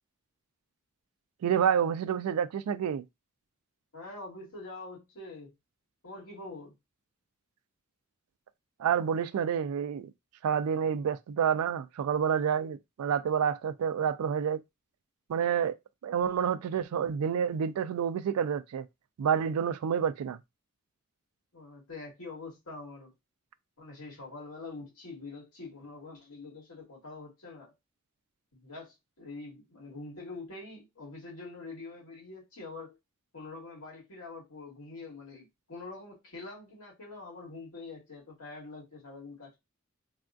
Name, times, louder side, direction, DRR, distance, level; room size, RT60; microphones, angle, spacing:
voice 1, 1.4-3.0 8.8-10.1 10.4-14.6 15.3-15.8 16.0-18.9 19.2-20.4, right 8 dB, 85° right, 0.3 m, -28 dB
voice 2, 3.9-5.5 6.0-6.8 21.5-23.1 23.8-27.7 28.5-33.0 33.3-39.6, left 3 dB, 85° left, 2.0 m, -45 dB
3.4 x 2.3 x 2.5 m
head